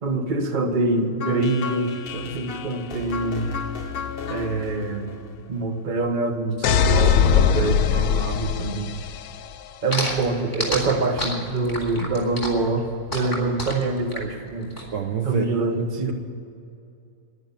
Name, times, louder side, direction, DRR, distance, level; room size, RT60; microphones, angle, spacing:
voice 1, 0.0-3.6 4.3-5.1 5.5-8.9 9.8-14.7 15.2-16.1, right 3 dB, 35° right, 5 dB, 1.3 m, -25 dB
sound 1, 1.2-6.2, left 5 dB, 45° left, 0.8 m, -34 dB
sound 2, 6.6-9.5, left 8 dB, 75° left, 1.1 m, -20 dB
sound 3, 9.9-14.8, left 1 dB, 15° left, 2.8 m, -29 dB
voice 2, 14.9-15.7, right 7 dB, 60° right, 4 dB, 1.2 m, -27 dB
10.5 x 10.5 x 9.7 m, 2.6 s
omnidirectional pair, 1.6 m